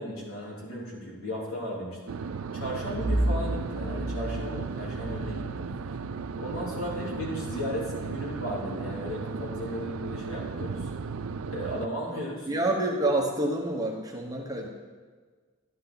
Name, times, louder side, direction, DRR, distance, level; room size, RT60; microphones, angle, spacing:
voice 1, 0.0-2.0 2.5-6.0 6.4-10.9 11.5-12.5, equal, 70° left, -5 dB, 3.6 m, -35 dB
sound 1, 2.1-11.9, right 5 dB, 80° right, 0.5 m, -35 dB
Bowed string instrument, 2.9-8.0, right 1 dB, 10° left, 1.4 m, -33 dB
voice 2, 12.5-14.7, right 2 dB, 20° right, 1 dB, 1.1 m, -28 dB
12.0 x 11.0 x 4.0 m, 1.5 s
head